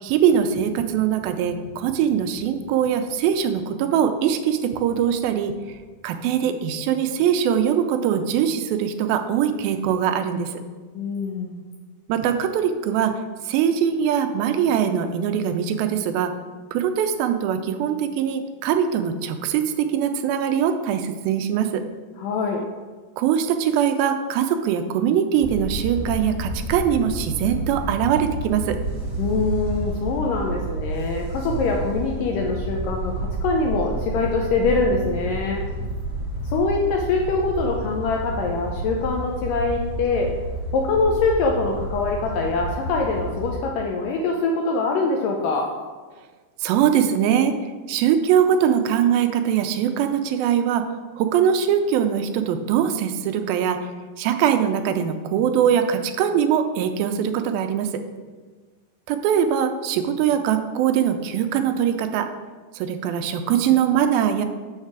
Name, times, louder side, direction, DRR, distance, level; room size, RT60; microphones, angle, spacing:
voice 1, 0.0-5.5 6.0-10.5 12.1-13.2 13.5-16.3 16.7-21.8 23.2-28.8 46.6-47.6 47.9-53.9 54.2-57.9 59.1-62.3 62.7-64.5, right 8 dB, 85° right, 8 dB, 2.3 m, -22 dB
voice 2, 10.9-11.6 22.2-22.6 29.2-35.6 36.5-40.3 40.7-45.7, left 3 dB, 80° left, 1 dB, 2.1 m, -24 dB
sound 1, 25.4-43.6, right 1 dB, 65° right, 1.2 m, -30 dB
6.5 x 6.4 x 4.8 m, 1.4 s
omnidirectional pair, 4.3 m